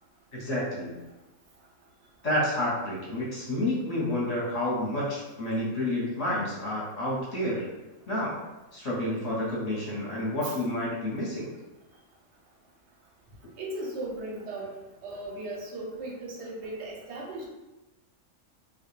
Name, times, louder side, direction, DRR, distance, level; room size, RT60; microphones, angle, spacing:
voice 1, 0.3-0.9 2.2-7.7 8.1-8.4 8.7-11.5, left 1 dB, 35° left, -6 dB, 0.8 m, -29 dB
voice 2, 13.6-14.7 15.0-17.5, right 2 dB, 60° right, -2 dB, 0.8 m, -37 dB
2.3 x 2.2 x 3.1 m, 1.0 s
omnidirectional pair, 1.5 m